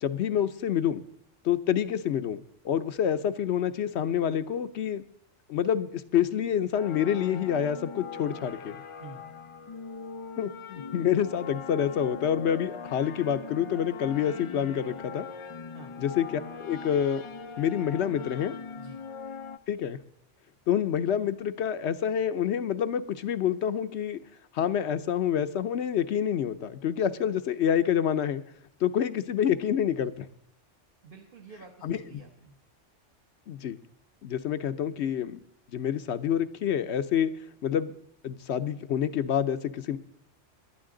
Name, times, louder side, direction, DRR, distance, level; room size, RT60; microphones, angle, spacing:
voice 1, 0.0-1.0 1.4-5.0 5.5-8.8 10.4-15.3 16.0-17.2 17.6-18.5 19.7-20.0 20.7-24.2 24.5-28.4 28.8-30.3 31.8-32.2 33.5-33.8 34.2-35.4 35.7-37.3 37.6-37.9 38.2-40.0, left 9 dB, 65° left, 12 dB, 0.9 m, -27 dB
sound 1, 6.7-19.6, left 5 dB, 45° left, 0.4 m, -41 dB
voice 2, 31.0-32.5, right 4 dB, 50° right, 1 dB, 1.3 m, -48 dB
18.5 x 11.5 x 3.8 m, 0.68 s
omnidirectional pair, 1.3 m